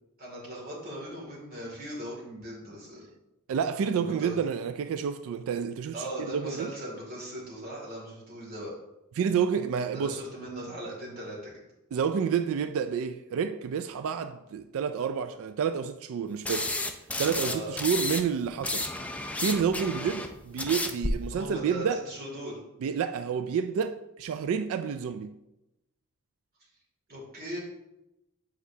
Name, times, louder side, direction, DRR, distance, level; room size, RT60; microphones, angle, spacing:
voice 1, 0.2-3.1 3.9-4.4 5.9-8.7 9.9-11.6 17.4-17.8 21.3-22.6 27.1-27.6, equal, 45° right, 2.4 m, -39 dB
voice 2, 3.5-6.7 9.2-10.2 11.9-16.7 17.2-18.9 19.4-22.1 22.8-25.3, right 7 dB, 65° right, 0.3 m, -29 dB
sound 1, 16.5-18.2 18.5-21.1, left 2 dB, 5° left, 0.4 m, -31 dB
8.2 x 4.8 x 2.8 m
head